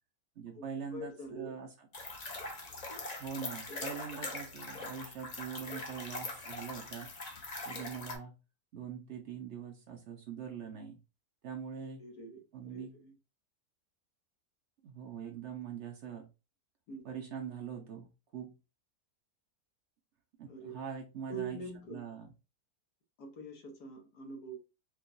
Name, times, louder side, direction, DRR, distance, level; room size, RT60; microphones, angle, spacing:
voice 1, 0.4-1.7 3.2-7.1 7.7-8.3 8.7-11.0 11.4-12.0 12.5-12.9 14.8-16.3 17.0-18.1 18.3-18.5 20.4-21.6 21.9-22.3, right 7 dB, 60° right, 0.8 m, -43 dB
voice 2, 0.9-1.5 3.7-3.8 12.0-12.4 12.7-13.1 16.9-17.1 20.5-20.8 21.3-22.0 23.2-24.6, right 3 dB, 85° left, 1.6 m, -44 dB
sound 1, 1.9-8.2, left 2 dB, 40° left, 0.6 m, -42 dB
4.5 x 2.3 x 2.6 m
omnidirectional pair, 1.6 m